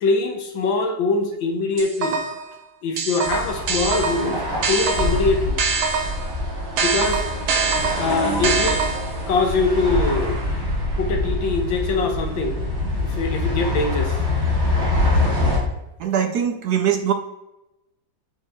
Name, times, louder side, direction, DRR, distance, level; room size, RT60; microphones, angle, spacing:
voice 1, 0.0-2.2 2.8-5.6 6.8-7.2 8.0-8.9 9.3-10.4 11.0-12.6 13.0-14.2, left 3 dB, 75° left, 4 dB, 1.9 m, -23 dB
sound 1, 1.8-2.5 3.0-6.3 6.8-9.2, right 4 dB, 85° right, 1.9 m, -24 dB
sound 2, 3.2-15.6, left 2 dB, 35° right, 2.3 m, -24 dB
voice 2, 16.0-17.1, right 9 dB, 70° right, 7 dB, 1.0 m, -21 dB
8.3 x 6.3 x 3.5 m, 0.94 s
omnidirectional pair, 2.1 m